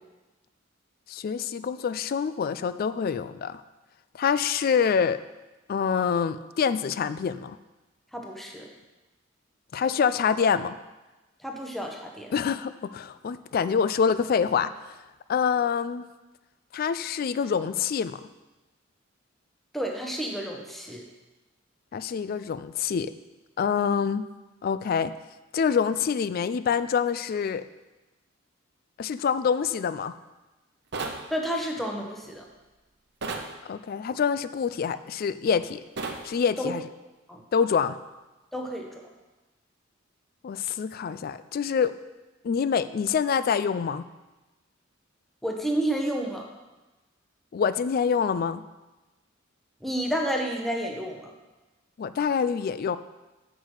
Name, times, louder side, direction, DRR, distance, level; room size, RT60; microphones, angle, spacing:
voice 1, 1.1-3.6 4.2-5.2 5.7-7.6 9.7-10.8 12.3-15.0 15.3-16.0 16.7-18.2 21.9-23.1 23.6-24.2 24.6-25.1 25.5-27.6 29.0-30.1 33.7-35.8 36.2-36.9 37.5-38.0 40.4-42.0 42.4-44.0 47.5-48.6 52.0-53.0, left 6 dB, 45° left, 14 dB, 0.3 m, -26 dB
voice 2, 8.1-8.7 11.4-12.3 19.7-21.0 31.3-32.4 36.6-36.7 37.3-37.4 38.5-38.9 45.4-46.5 49.8-51.3, right 1 dB, ahead, 0 dB, 0.8 m, -30 dB
sound 1, 30.9-31.2 33.2-33.5 36.0-36.2, right 3 dB, 60° right, 0.8 m, -32 dB
8.2 x 6.0 x 4.8 m, 1.1 s
head